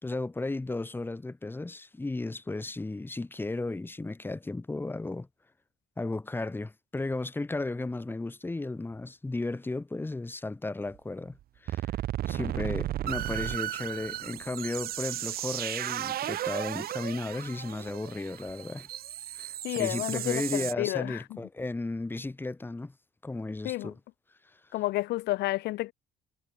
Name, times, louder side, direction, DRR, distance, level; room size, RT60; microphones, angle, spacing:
voice 1, 0.0-5.3 6.0-11.4 11.6-11.8 12.3-18.9 19.4-22.9 23.2-23.9, left 2 dB, 10° left, 1.9 m, -34 dB
sound 1, 10.9-11.0 11.4-11.5 11.7-20.7, right 13 dB, 65° right, 1.8 m, -35 dB
voice 2, 19.6-21.4 23.6-23.9 24.7-25.9, left 18 dB, 80° left, 1.8 m, -31 dB
cardioid pair, 110°, 17 cm